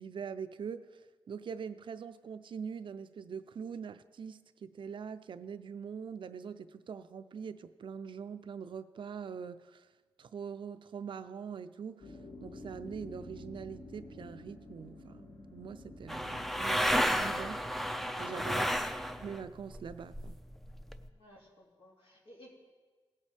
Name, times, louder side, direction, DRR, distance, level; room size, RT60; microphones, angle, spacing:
voice 1, 0.0-9.9 10.2-17.8 18.2-18.8 19.2-20.4, right 6 dB, 60° right, 12 dB, 0.4 m, -43 dB
sound 1, 12.0-19.3, left 1 dB, 55° left, 1.7 m, -50 dB
sound 2, 16.1-19.4 19.7-21.0, equal, ahead, 0.4 m, -32 dB
voice 2, 18.5-18.9 21.1-22.5, left 1 dB, 80° left, -2 dB, 2.6 m, -56 dB
17.5 x 8.2 x 3.4 m, 1.3 s
wide cardioid pair, 115°, 9 cm